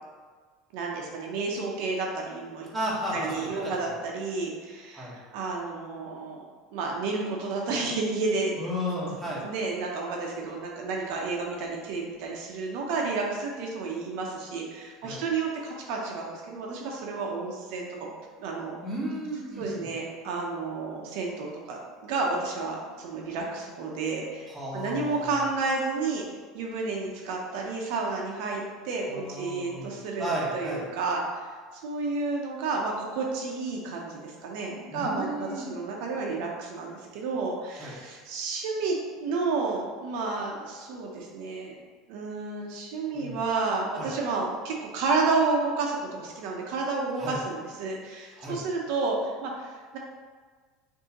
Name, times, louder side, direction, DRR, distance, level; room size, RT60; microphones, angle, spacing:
voice 1, 0.7-2.7 3.1-6.5 6.7-8.6 9.0-18.1 18.4-18.8 19.6-26.2 26.5-30.3 30.5-31.5 31.8-39.0 39.2-41.8 42.1-50.0, right 3 dB, 70° right, -1 dB, 0.7 m, -31 dB
voice 2, 2.7-3.7 4.9-5.1 8.6-9.4 15.0-15.2 18.8-19.9 24.5-25.5 29.1-30.8 34.9-35.7 37.8-37.9 43.1-43.4 44.0-44.1 47.2-47.4 48.4-48.6, equal, 10° right, -7 dB, 1.3 m, -33 dB
6.2 x 2.7 x 2.9 m, 1.5 s
supercardioid pair, 140°, 0 cm